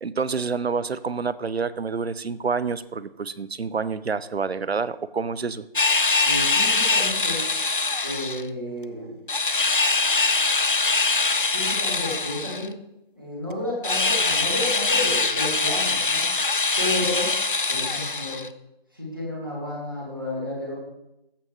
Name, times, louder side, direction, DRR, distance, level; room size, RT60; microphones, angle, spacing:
voice 1, 0.0-5.7, right 5 dB, 85° right, 16 dB, 0.6 m, -28 dB
sound 1, 5.8-8.4 9.3-12.7 13.8-18.5, left 3 dB, 60° left, 0.4 m, -23 dB
voice 2, 6.2-7.4 8.0-9.1 11.5-12.7 13.2-16.2 16.8-17.3 17.7-18.4 18.9-20.8, left 1 dB, 20° right, -5 dB, 1.9 m, -31 dB
14.5 x 5.7 x 3.2 m, 0.84 s
figure-of-eight pair, 175°, 31 cm